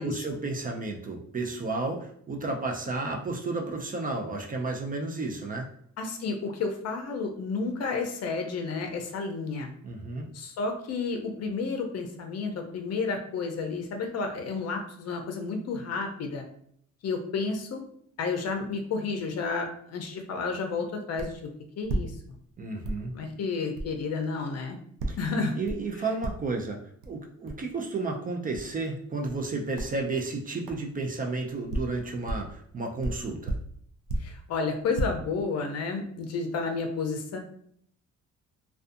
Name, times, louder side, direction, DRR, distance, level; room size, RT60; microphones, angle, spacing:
voice 1, 0.0-5.7 9.8-10.3 22.6-23.1 25.1-25.2 25.6-26.8 27.1-33.6, right 3 dB, 30° right, 1 dB, 0.4 m, -32 dB
voice 2, 6.0-9.7 10.3-16.5 17.0-17.8 18.2-22.1 23.1-24.8 25.2-25.5 34.2-37.4, left 4 dB, 55° left, 4 dB, 0.6 m, -31 dB
sound 1, 21.2-21.4 21.8-22.5 22.8-23.1 23.7-23.9 25.0-25.3 25.7-25.9 26.2-26.6 27.0-27.1 27.5-27.6 28.5-28.7 29.2-29.5 29.7-30.0 30.7-30.8 31.5-32.6 33.0-34.4 34.8-35.0, right 2 dB, 85° right, 0.5 m, -33 dB
2.4 x 2.3 x 2.5 m, 0.65 s
cardioid pair, 100°, 30 cm